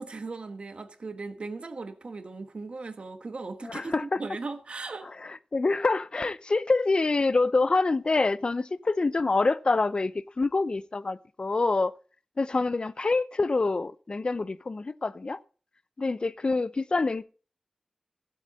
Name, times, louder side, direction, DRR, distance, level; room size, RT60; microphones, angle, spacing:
voice 1, 0.0-5.1, right 3 dB, 70° right, 1.5 m, -38 dB
voice 2, 3.6-4.2 5.2-11.9 12.4-15.4 16.0-17.2, left 3 dB, 50° left, 0.7 m, -26 dB
15.0 x 8.1 x 4.1 m
wide cardioid pair, 65°, 2 cm